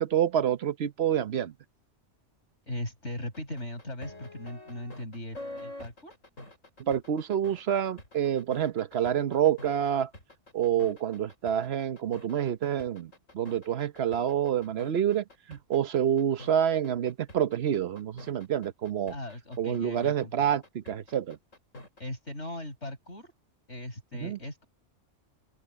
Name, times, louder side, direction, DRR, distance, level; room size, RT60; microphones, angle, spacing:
voice 1, 0.0-1.5 6.8-10.1 10.5-19.1 19.6-21.4 24.2-24.4, right 9 dB, 60° right, 1.0 m, -28 dB
voice 2, 2.7-6.1 19.1-20.3 22.0-23.3 23.7-24.6, left 1 dB, 65° left, 7.0 m, -39 dB
sound 1, 3.3-22.0, left 1 dB, 85° left, 7.2 m, -47 dB
open air
omnidirectional pair, 1.3 m